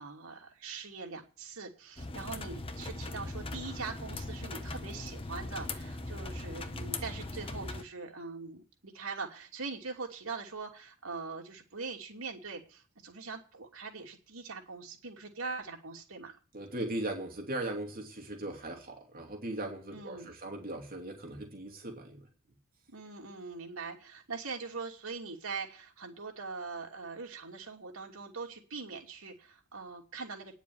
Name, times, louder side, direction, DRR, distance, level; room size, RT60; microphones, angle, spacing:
voice 1, 0.0-16.4 19.9-20.3 22.9-30.5, right 4 dB, 90° right, 1 dB, 2.9 m, -42 dB
sound 1, 2.0-7.8, left 2 dB, 25° left, 1.2 m, -40 dB
voice 2, 16.5-22.3, right 1 dB, 45° right, 2 dB, 2.8 m, -38 dB
10.0 x 7.1 x 8.8 m, 0.39 s
head